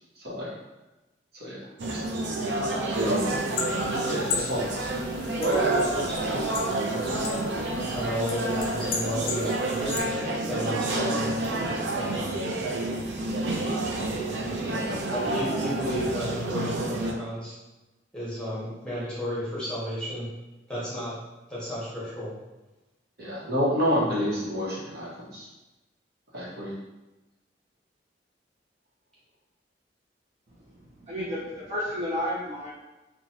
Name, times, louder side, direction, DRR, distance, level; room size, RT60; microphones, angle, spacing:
voice 1, 0.2-0.5 1.3-1.6 1.9-2.0 2.9-3.3 4.1-4.9 14.6-15.1 23.2-25.5 26.3-26.7, equal, 60° right, -7 dB, 1.0 m, -29 dB
sound 1, 1.8-17.1, right 2 dB, 85° right, 0.4 m, -29 dB
sound 2, 2.9-10.0, left 4 dB, 55° left, 0.4 m, -36 dB
voice 2, 5.4-7.1 7.8-10.0 10.5-11.3 15.1-17.5 18.1-20.3 20.7-21.1 21.5-22.3, equal, 5° left, -9 dB, 0.9 m, -33 dB
voice 3, 30.7-32.7, equal, 40° right, -9 dB, 0.6 m, -32 dB
3.1 x 2.2 x 2.7 m, 1.1 s
head